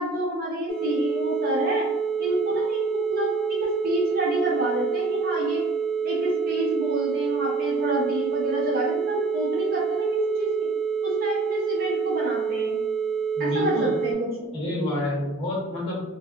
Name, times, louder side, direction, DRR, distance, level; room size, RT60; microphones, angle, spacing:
voice 1, 0.0-1.9 2.2-5.6 6.0-10.5 11.0-12.8 13.4-14.5, equal, 45° right, -4 dB, 0.8 m, -28 dB
sound 1, 0.7-14.1, right 7 dB, 5° right, 0.6 m, -27 dB
voice 2, 13.4-13.9 14.5-16.1, left 1 dB, 25° left, -7 dB, 1.2 m, -28 dB
3.2 x 2.3 x 2.5 m, 1.0 s
head